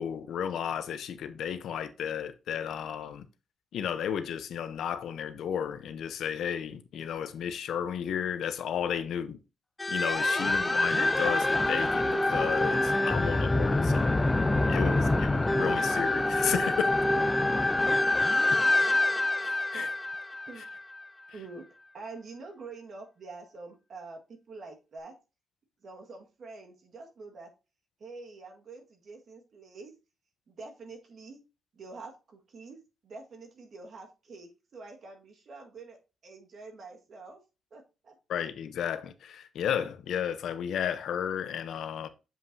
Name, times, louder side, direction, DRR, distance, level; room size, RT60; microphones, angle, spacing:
voice 1, 0.0-3.3 3.7-9.4 9.9-14.3 14.7-17.0 18.5-18.7 19.4-19.9 38.3-42.1, left 8 dB, 75° left, 0.7 m, -33 dB
sound 1, 9.8-21.0, left 2 dB, 15° left, 0.3 m, -26 dB
voice 2, 10.4-10.9 17.0-18.0 18.4-18.8 19.7-19.8 20.5-20.6 21.3-25.1 25.8-27.5 28.0-29.9 30.5-31.4 31.7-36.0 36.2-37.4 37.7-38.1, right 3 dB, 50° right, 1.6 m, -46 dB
7.4 x 5.5 x 2.7 m
cardioid pair, 155°, 0 cm